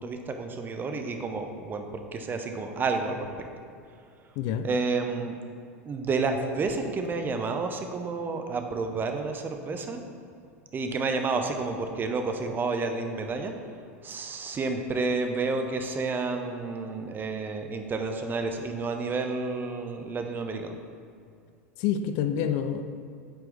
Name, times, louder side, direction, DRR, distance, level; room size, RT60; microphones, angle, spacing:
voice 1, 0.0-1.9 2.1-3.3 4.6-5.4 5.9-10.0 10.7-13.5 14.0-20.7, right 3 dB, 25° right, 5 dB, 0.7 m, -30 dB
voice 2, 4.4-4.7 21.8-22.8, left 8 dB, 50° left, 8 dB, 0.4 m, -27 dB
8.9 x 4.5 x 3.4 m, 2.3 s
figure-of-eight pair, 85°, 8 cm